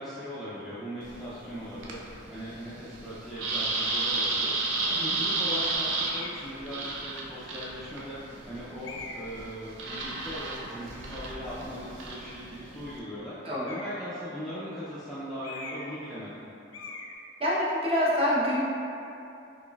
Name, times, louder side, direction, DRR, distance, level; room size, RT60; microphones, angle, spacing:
voice 1, 0.0-16.4, equal, ahead, -12 dB, 0.4 m, -39 dB
sound 1, 1.0-13.0, right 3 dB, 75° right, 0.5 m, -33 dB
sound 2, 6.0-6.4 7.3-7.4 8.8-9.4 13.5-14.1 15.4-16.0 16.3-16.4 16.7-17.1, left 3 dB, 75° left, 0.4 m, -42 dB
voice 2, 13.4-13.8 17.4-18.6, equal, 30° right, -8 dB, 0.7 m, -26 dB
4.0 x 3.2 x 2.3 m, 2.8 s
head